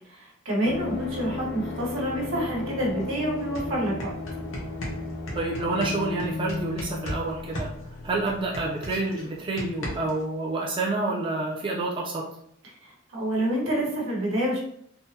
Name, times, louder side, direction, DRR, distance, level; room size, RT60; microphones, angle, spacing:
voice 1, 0.1-4.1 12.8-14.6, right 1 dB, 85° right, -4 dB, 1.2 m, -28 dB
sound 1, 0.6-9.2 9.4-9.5, left 3 dB, 50° left, 0.4 m, -35 dB
sound 2, 3.0-3.1 3.4-7.2 7.5-10.2, equal, 80° left, 1.0 m, -36 dB
voice 2, 5.3-7.7 8.0-12.3, right 2 dB, 25° right, -3 dB, 0.4 m, -28 dB
3.6 x 2.0 x 2.7 m, 0.69 s
head